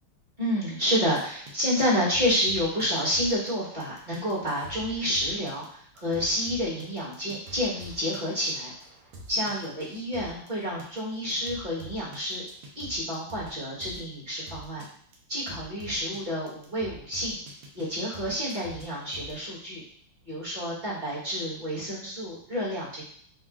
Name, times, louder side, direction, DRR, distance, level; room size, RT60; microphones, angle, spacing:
voice 1, 0.4-8.7 9.3-12.4 12.7-14.8 15.3-17.4 17.7-19.8 20.3-23.0, equal, 30° right, -7 dB, 1.0 m, -29 dB
sound 1, 1.1-1.5 1.8-1.9 2.1-3.5 3.8-10.5 10.8-11.0 11.3-13.5 13.8-14.0 14.5-14.9 15.1-15.2 15.5-16.2 16.5-17.8 18.1-19.4, right 1 dB, 85° right, 1.7 m, -45 dB
5.9 x 2.3 x 2.4 m, 0.62 s
omnidirectional pair, 2.4 m